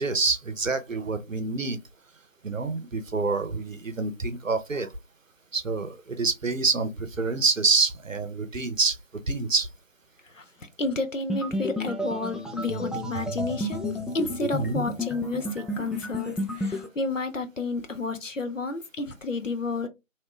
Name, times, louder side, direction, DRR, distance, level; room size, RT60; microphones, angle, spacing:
voice 1, 0.0-1.8 2.4-4.9 5.5-9.0 9.3-9.7 14.6-14.8, right 4 dB, 75° right, 0.7 m, -27 dB
voice 2, 10.8-19.9, left 3 dB, 70° left, 0.8 m, -31 dB
sound 1, 11.3-16.9, left 1 dB, ahead, 0.4 m, -31 dB
2.9 x 2.2 x 2.9 m
figure-of-eight pair, 175°, 40 cm